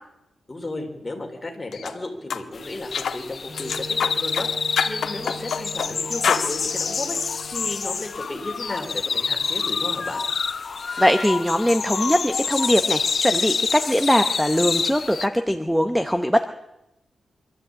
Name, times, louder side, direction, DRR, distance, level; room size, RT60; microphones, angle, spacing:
voice 1, 0.5-4.5 4.8-10.2, left 2 dB, 20° left, 2 dB, 3.8 m, -33 dB
sound 1, 1.7-1.9 2.3-2.4 2.9-3.2 3.6-4.5 4.8-5.9 6.2-6.5, left 7 dB, 80° left, 1.3 m, -25 dB
sound 2, 2.5-15.3, left 5 dB, 45° left, 0.7 m, -27 dB
Wind instrument woodwind instrument, 3.5-8.2, equal, 60° right, 5.4 m, -40 dB
voice 2, 11.0-16.4, equal, ahead, 6 dB, 0.8 m, -21 dB
24.5 x 13.0 x 8.8 m, 0.91 s
wide cardioid pair, 150°, 0 cm